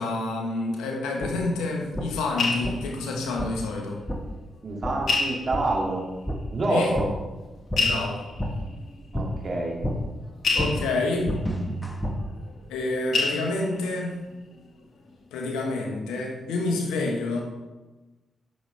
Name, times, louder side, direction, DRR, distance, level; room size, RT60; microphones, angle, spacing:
voice 1, 0.0-4.0 6.7-7.0 7.8-8.2 10.5-11.4 12.7-14.2 15.3-17.4, left 2 dB, 90° left, 1 dB, 1.3 m, -28 dB
sound 1, 1.2-1.3 1.9-2.1 2.6-2.8 3.4-3.5 4.1-4.2 4.8-4.9 5.5-5.6 6.3-6.4 6.9-7.1 7.7-7.8 8.4-8.5 9.1-9.3 9.8-9.9 10.6-10.7 11.3-12.1, equal, 15° left, 1.6 m, -29 dB
sound 2, 1.7-4.0 4.3-4.4 5.1-6.0 6.9-7.0 7.7-12.9 13.1-14.1 14.5-14.8 15.1-15.2, left 3 dB, 65° left, 1.6 m, -30 dB
voice 2, 4.6-6.0 6.5-7.1 9.1-9.8, right 2 dB, 50° right, -1 dB, 2.3 m, -27 dB
9.9 x 6.8 x 3.3 m, 1.2 s
supercardioid pair, 45°, 0 cm